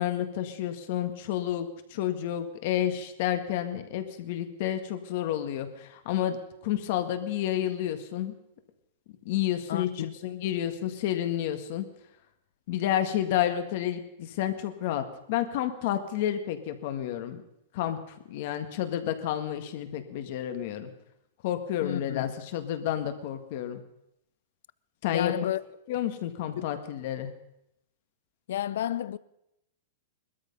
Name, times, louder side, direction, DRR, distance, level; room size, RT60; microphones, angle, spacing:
voice 1, 0.0-6.4 6.6-8.3 9.2-11.8 12.7-17.4 17.7-20.9 21.4-23.8 25.0-25.3 25.9-27.3, left 11 dB, 50° left, 1.7 m, -30 dB
voice 2, 9.7-10.2 21.8-22.3 25.1-25.6 26.6-26.7 28.5-29.2, left 11 dB, 70° left, 0.6 m, -31 dB
19.5 x 13.0 x 5.4 m
supercardioid pair, 155°, 0 cm